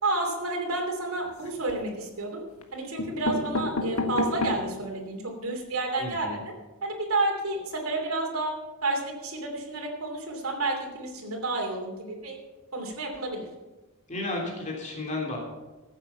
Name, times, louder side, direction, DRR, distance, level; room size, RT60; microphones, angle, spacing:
voice 1, 0.0-2.4 2.7-6.4 6.8-8.5 8.8-12.4 12.7-13.4, right 2 dB, 70° right, -1 dB, 2.9 m, -30 dB
sound 1, 1.2-1.9 2.6-2.7 3.0-4.8 5.3-5.4 5.6-5.7 6.0-6.1, left 2 dB, 80° left, 1.5 m, -30 dB
voice 2, 6.0-6.4 14.1-15.4, left 2 dB, 35° left, -1 dB, 3.1 m, -33 dB
14.5 x 8.4 x 5.6 m, 1.2 s
head